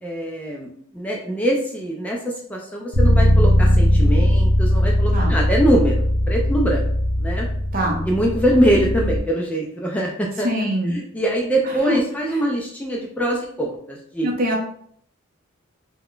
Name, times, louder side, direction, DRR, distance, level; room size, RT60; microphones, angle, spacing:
voice 1, 0.0-6.8 7.2-7.5 8.1-10.5 10.9-14.3, right 1 dB, 5° left, -2 dB, 0.3 m, -23 dB
Bass guitar, 2.9-9.2, left 1 dB, 80° left, 0.6 m, -18 dB
voice 2, 7.7-8.0 10.4-11.0 11.6-12.0 12.3-12.4 14.2-14.6, equal, 45° right, -1 dB, 0.6 m, -23 dB
2.4 x 2.1 x 3.6 m, 0.64 s
head